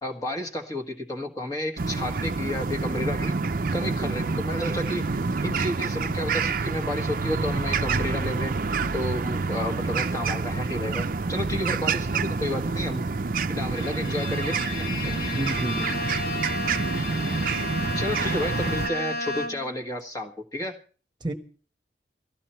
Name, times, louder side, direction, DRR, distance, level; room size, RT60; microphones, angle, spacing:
voice 1, 0.0-3.4 3.7-8.6 8.9-13.1 13.5-14.9 17.9-20.8, left 1 dB, 20° left, 2 dB, 1.5 m, -31 dB
sound 1, 1.8-18.9, right 4 dB, 50° right, 0.6 m, -28 dB
Bowed string instrument, 13.7-19.8, left 2 dB, 55° left, 1.5 m, -33 dB
voice 2, 15.3-16.1 21.2-21.3, right 1 dB, 25° right, 5 dB, 1.3 m, -31 dB
18.0 x 14.0 x 4.4 m, 0.40 s
head